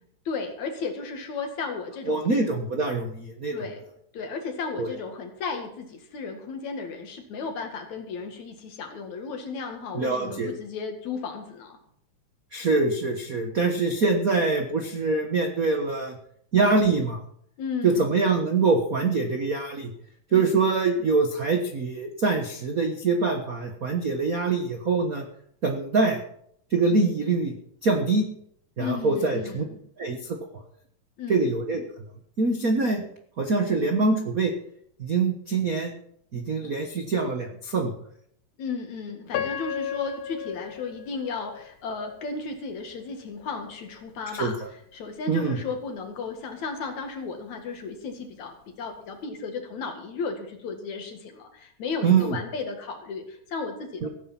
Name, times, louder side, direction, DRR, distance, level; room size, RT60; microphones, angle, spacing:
voice 1, 0.3-2.4 3.5-3.8 4.1-11.8 17.6-18.1 20.3-20.6 28.8-29.8 31.2-31.5 38.6-44.5 44.9-54.1, left 4 dB, 65° left, 4 dB, 3.2 m, -34 dB
voice 2, 2.1-3.6 4.8-4.9 9.9-10.5 12.5-16.2 16.5-17.2 17.8-19.9 20.3-25.2 25.6-26.2 26.7-27.5 27.8-28.2 28.8-29.6 30.0-30.4 31.3-31.8 32.4-33.0 33.4-34.5 35.0-35.9 36.3-37.9 44.3-44.5 45.3-45.6 52.0-52.4 54.0-54.1, right 3 dB, 55° right, 3 dB, 0.9 m, -24 dB
Piano, 39.3-42.3 42.9-43.0 43.7-43.9, left 10 dB, 85° left, 2.4 m, -34 dB
16.5 x 9.3 x 5.9 m, 0.69 s
omnidirectional pair, 3.6 m